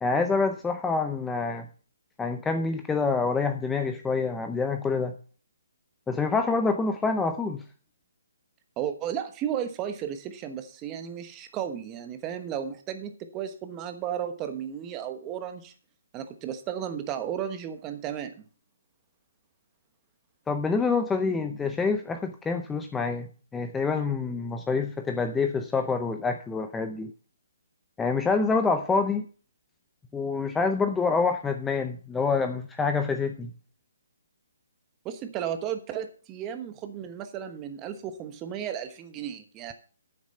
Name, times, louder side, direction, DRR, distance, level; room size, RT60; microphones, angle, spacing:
voice 1, 0.0-1.7 2.2-5.2 6.1-7.6 20.5-23.3 23.5-27.1 28.0-29.2 30.1-33.5, left 4 dB, 10° left, 7 dB, 0.6 m, -26 dB
voice 2, 8.8-15.7 16.1-18.3 35.0-39.7, right 9 dB, 20° right, 8 dB, 1.2 m, -34 dB
9.4 x 7.2 x 5.5 m, 0.40 s
hypercardioid pair, 150°, 0 cm